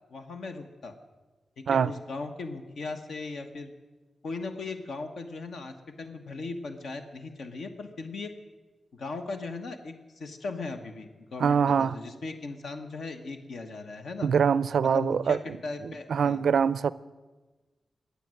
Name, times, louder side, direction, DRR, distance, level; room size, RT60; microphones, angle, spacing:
voice 1, 0.1-0.9 1.6-3.7 4.2-8.3 8.9-14.3 14.8-16.4, left 3 dB, 75° left, 6 dB, 1.3 m, -38 dB
voice 2, 11.4-12.0 14.2-15.4 15.8-16.9, right 7 dB, 90° right, 19 dB, 0.4 m, -24 dB
22.0 x 8.6 x 7.7 m, 1.2 s
wide cardioid pair, 150°, 0 cm